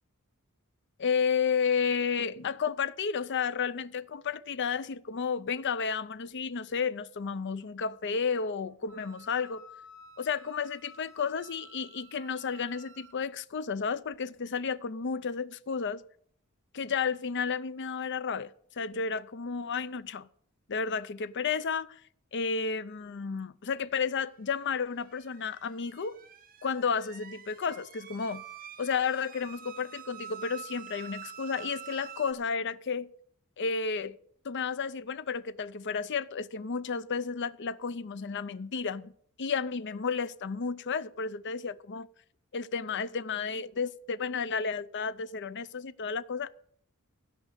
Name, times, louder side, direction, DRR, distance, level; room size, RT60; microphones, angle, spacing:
voice 1, 1.0-9.6 10.2-16.0 16.7-20.3 20.7-22.0 22.3-26.2 26.6-28.4 28.8-33.1 33.6-34.2 34.4-39.1 39.4-42.1 42.5-46.6, left 5 dB, 55° left, 0.6 m, -32 dB
Wind instrument woodwind instrument, 8.9-13.2, equal, 65° right, 1.3 m, -53 dB
sound 1, 24.7-32.3, right 8 dB, 40° right, 0.8 m, -47 dB
15.5 x 5.3 x 8.2 m
head